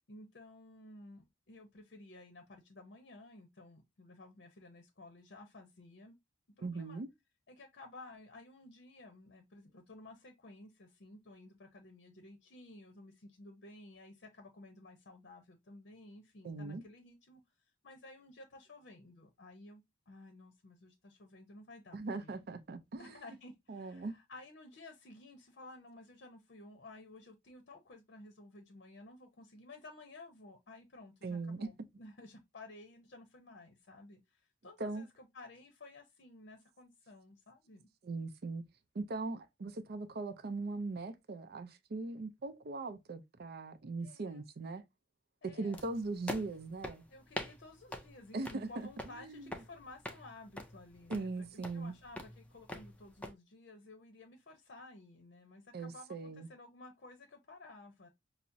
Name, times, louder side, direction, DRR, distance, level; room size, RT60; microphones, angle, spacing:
voice 1, 0.1-6.2 6.6-7.0 7.5-17.4 17.8-22.5 23.0-37.9 44.0-44.4 45.4-45.9 47.1-58.1, left 2 dB, 55° left, 0.6 m, -54 dB
voice 2, 6.6-7.1 16.4-16.8 21.9-23.2 23.7-24.2 31.2-31.7 34.8-35.1 38.0-38.6 38.9-44.8 45.4-47.1 48.3-48.7 49.1-49.5 51.1-51.9 55.7-56.5, right 3 dB, 50° right, 0.5 m, -40 dB
sound 1, 45.7-53.3, left 1 dB, 5° left, 0.4 m, -46 dB
5.7 x 2.0 x 2.5 m
head